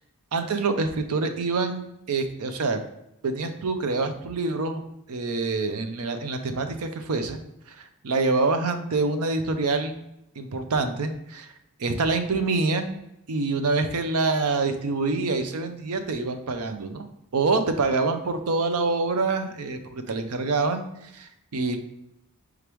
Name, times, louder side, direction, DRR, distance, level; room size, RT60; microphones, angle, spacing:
voice 1, 0.3-2.8 3.2-4.8 5.1-7.4 7.7-10.0 10.4-11.5 11.8-12.9 13.3-17.0 17.3-21.8, right 3 dB, 80° right, 8 dB, 0.6 m, -26 dB
4.9 x 3.4 x 3.0 m, 0.82 s
head